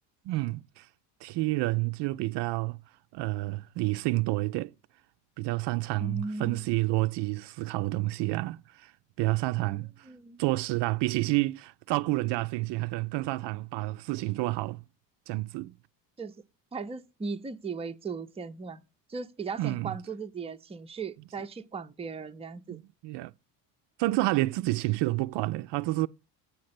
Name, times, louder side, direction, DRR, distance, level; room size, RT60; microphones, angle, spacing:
voice 1, 0.3-0.9 1.2-2.8 3.1-4.7 5.4-8.9 9.2-10.1 10.4-14.8 15.3-15.7 19.6-19.9 22.7-23.3 24.0-26.1, right 20 dB, 60° right, 0.5 m, -29 dB
voice 2, 6.0-6.7 9.6-10.4 16.2-16.4 16.7-18.8 19.1-22.8, right 4 dB, 15° right, 0.6 m, -37 dB
8.7 x 5.2 x 5.9 m
supercardioid pair, 95°, 47 cm